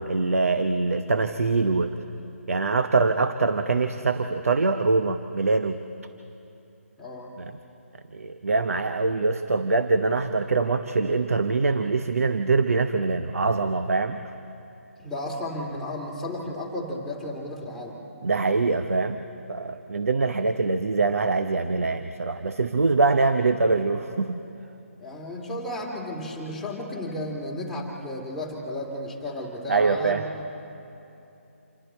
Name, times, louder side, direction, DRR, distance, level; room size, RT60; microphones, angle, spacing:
voice 1, 0.0-1.9 2.5-5.8 7.4-7.5 8.1-14.3 18.2-24.4 29.7-30.2, right 3 dB, 75° right, 9 dB, 0.8 m, -24 dB
voice 2, 7.0-7.3 15.0-18.0 25.0-30.4, left 1 dB, ahead, -4 dB, 2.4 m, -33 dB
27.5 x 23.0 x 4.4 m, 2.9 s
figure-of-eight pair, 150°, 8 cm